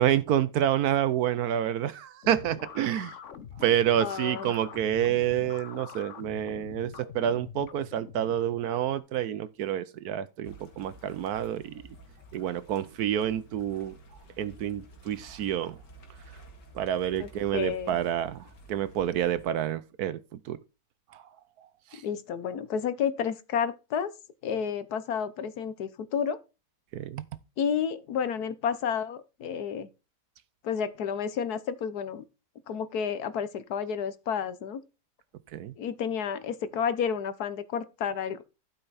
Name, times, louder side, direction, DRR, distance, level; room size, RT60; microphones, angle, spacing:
voice 1, 0.0-3.2 3.6-11.8 12.3-13.9 14.4-15.8 16.8-20.6 21.1-21.2 21.9-22.0 26.9-27.2 35.5-35.7, right 10 dB, 70° right, 1.1 m, -28 dB
sound 1, 2.2-9.0, left 7 dB, 50° left, 1.1 m, -44 dB
voice 2, 4.0-4.5 17.2-18.0 22.0-24.1 24.4-26.4 27.6-29.9 30.6-32.2 32.7-34.8 35.8-38.4, left 7 dB, 65° left, 1.3 m, -31 dB
sound 2, 10.4-19.5, right 1 dB, 85° left, 2.5 m, -52 dB
12.0 x 5.7 x 4.1 m
omnidirectional pair, 1.8 m